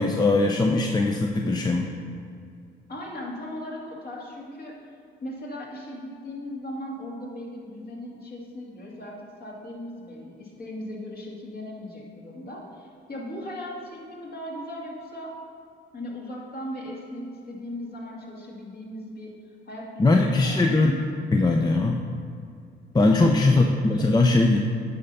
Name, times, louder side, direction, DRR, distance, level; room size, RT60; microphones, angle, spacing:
voice 1, 0.0-1.9 20.0-20.9 21.3-22.0 22.9-24.6, left 2 dB, 20° left, 2 dB, 0.6 m, -20 dB
voice 2, 2.9-4.8 5.2-15.3 15.9-19.3 19.7-20.9 23.1-23.6, left 1 dB, 50° left, -3 dB, 2.3 m, -38 dB
8.7 x 5.8 x 5.5 m, 2.4 s
cardioid pair, 90°, 20 cm